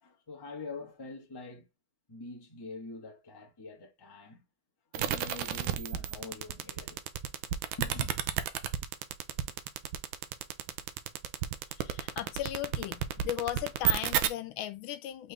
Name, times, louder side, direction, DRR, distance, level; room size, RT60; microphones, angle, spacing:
voice 1, 0.0-1.7 2.1-4.4 4.9-7.0 7.8-8.1, left 3 dB, 15° left, 0.8 m, -44 dB
sound 1, 4.9-14.3, right 11 dB, 80° right, 1.3 m, -31 dB
voice 2, 11.8-15.3, left 12 dB, 85° left, 1.4 m, -37 dB
4.0 x 3.7 x 3.2 m
omnidirectional pair, 2.2 m